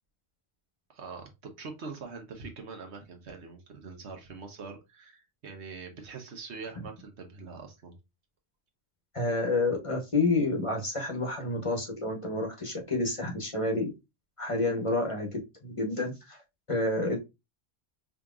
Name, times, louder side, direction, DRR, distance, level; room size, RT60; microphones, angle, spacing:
voice 1, 0.9-7.9, right 4 dB, 90° right, 4 dB, 1.3 m, -43 dB
voice 2, 9.1-13.9 14.4-16.4 16.7-17.2, left 2 dB, 30° left, 1 dB, 0.9 m, -29 dB
5.0 x 2.9 x 2.4 m, 0.24 s
omnidirectional pair, 1.1 m